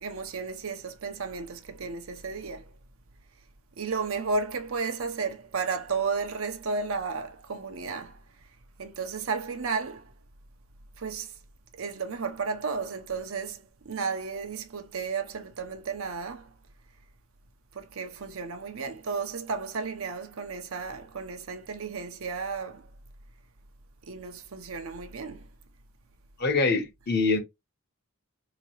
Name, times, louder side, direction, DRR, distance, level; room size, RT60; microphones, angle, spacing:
voice 1, 0.0-2.7 3.8-8.2 8.8-10.1 11.0-11.3 11.8-16.5 17.7-22.9 24.1-25.5, right 4 dB, 70° right, 0.7 m, -33 dB
voice 2, 26.4-27.4, left 3 dB, 50° left, 0.9 m, -24 dB
3.8 x 2.9 x 2.9 m
head